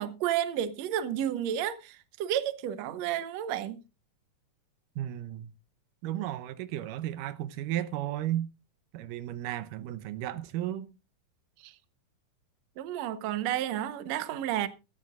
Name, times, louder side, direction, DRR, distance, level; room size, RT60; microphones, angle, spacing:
voice 1, 0.0-3.8 11.6-11.8 12.8-14.7, right 11 dB, 70° right, 1.9 m, -31 dB
voice 2, 5.0-5.5 6.0-8.5 8.9-10.9, right 13 dB, 85° right, 2.4 m, -34 dB
17.0 x 13.0 x 2.4 m
omnidirectional pair, 3.7 m